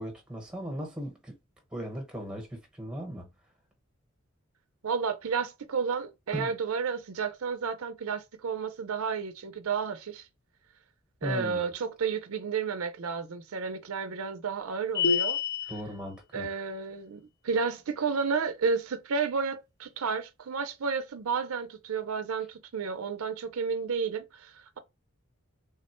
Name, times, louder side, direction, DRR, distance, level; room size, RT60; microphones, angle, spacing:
voice 1, 0.0-1.4 1.7-3.3 6.3-6.5 11.2-11.6 15.7-16.5, equal, 5° right, 0.9 m, -37 dB
voice 2, 4.8-10.3 11.2-15.4 16.3-24.8, right 5 dB, 75° right, 0.5 m, -31 dB
sound 1, 14.9-15.8, left 6 dB, 45° left, 0.5 m, -27 dB
3.5 x 2.1 x 4.3 m
head